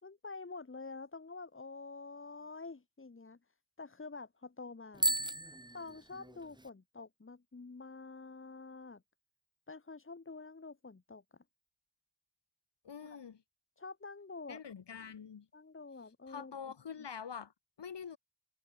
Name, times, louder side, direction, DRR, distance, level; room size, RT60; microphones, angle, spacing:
voice 1, 0.0-3.4 3.8-5.1 5.7-9.0 9.7-11.2 13.8-14.6 15.0-15.1 15.5-16.5, left 3 dB, 30° left, 5.1 m, -48 dB
Bicycle bell, 4.9-6.7, right 1 dB, 10° right, 3.7 m, -35 dB
voice 2, 12.8-13.4 14.5-15.5 16.3-18.2, left 7 dB, 90° left, 7.1 m, -45 dB
wide cardioid pair, 180°, 41 cm